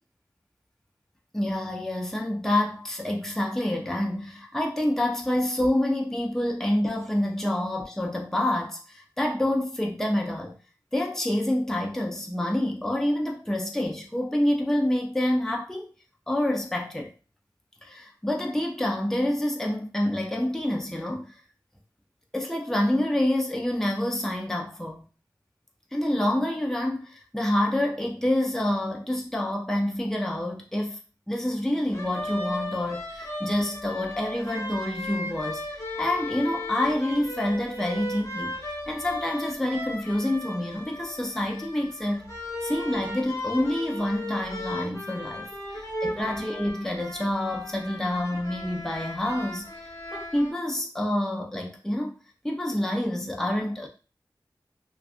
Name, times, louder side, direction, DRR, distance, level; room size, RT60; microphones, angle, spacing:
voice 1, 1.3-10.6 10.9-15.9 16.3-17.1 17.8-21.3 22.3-25.1 25.9-31.0 31.3-35.6 35.9-42.3 42.6-49.7 50.1-52.1 52.4-53.9, left 1 dB, 5° left, 0.5 m, -27 dB
sound 1, 31.9-50.5, left 1 dB, 40° left, 0.9 m, -36 dB
2.5 x 2.3 x 2.4 m
wide cardioid pair, 55°, 8 cm